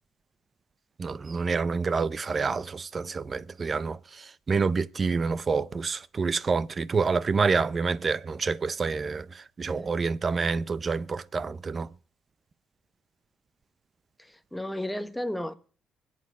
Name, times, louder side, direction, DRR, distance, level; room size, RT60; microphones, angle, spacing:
voice 1, 1.0-11.9, right 4 dB, 35° right, 0.7 m, -28 dB
voice 2, 14.2-15.5, left 1 dB, 5° left, 1.1 m, -34 dB
24.5 x 8.6 x 4.8 m
cardioid pair, 90°, 0 cm